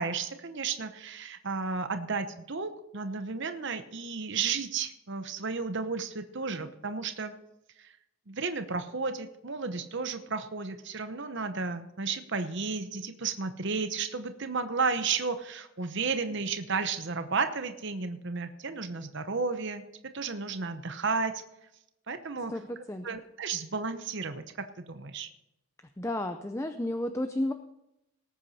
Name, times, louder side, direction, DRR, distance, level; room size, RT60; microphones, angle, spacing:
voice 1, 0.0-7.3 7.8-8.0 8.3-19.8 20.1-21.4 22.1-22.5 23.0-25.3, right 4 dB, 55° right, 9 dB, 0.9 m, -33 dB
voice 2, 22.5-23.1 26.0-27.5, left 1 dB, 15° left, 7 dB, 0.5 m, -32 dB
19.0 x 8.7 x 4.2 m, 0.87 s
head